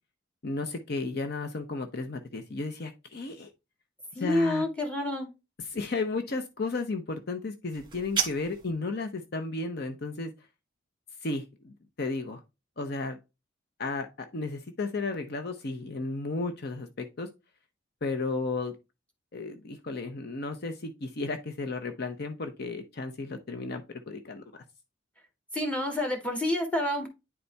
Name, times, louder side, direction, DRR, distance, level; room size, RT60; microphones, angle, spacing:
voice 1, 0.4-3.5 4.2-4.6 5.6-10.3 11.2-12.4 12.8-13.2 13.8-17.3 18.0-18.7 19.3-24.4, left 3 dB, 55° left, 0.8 m, -34 dB
voice 2, 4.1-5.3 25.5-27.1, left 1 dB, 5° left, 2.0 m, -28 dB
sound 1, 7.7-8.7, right 6 dB, 25° right, 1.6 m, -32 dB
9.9 x 4.1 x 3.4 m
head